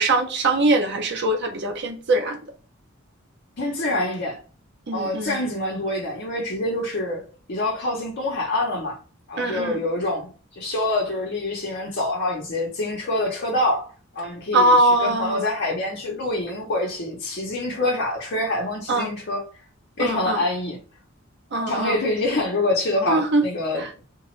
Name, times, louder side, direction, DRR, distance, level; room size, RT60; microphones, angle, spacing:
voice 1, 0.0-2.4 4.9-5.4 9.4-9.8 14.5-15.5 18.9-19.1 20.0-20.4 21.5-22.0 23.1-23.4 23.8-23.9, right 2 dB, 55° right, 0.7 m, -22 dB
voice 2, 3.6-4.4 4.9-9.0 9.3-10.3 10.6-19.5 20.0-20.8 21.7-24.0, left 2 dB, 55° left, 0.7 m, -26 dB
2.9 x 2.2 x 3.0 m
head